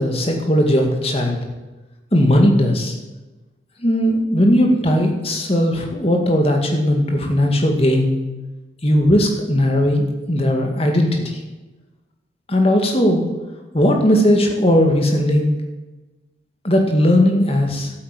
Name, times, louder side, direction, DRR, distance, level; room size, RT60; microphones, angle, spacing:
voice 1, 0.0-1.4 2.1-3.0 3.8-8.2 8.8-11.4 12.5-13.3 13.7-15.5 16.6-17.9, equal, 30° left, 2 dB, 2.1 m, -17 dB
12.0 x 9.2 x 8.4 m, 1.1 s
head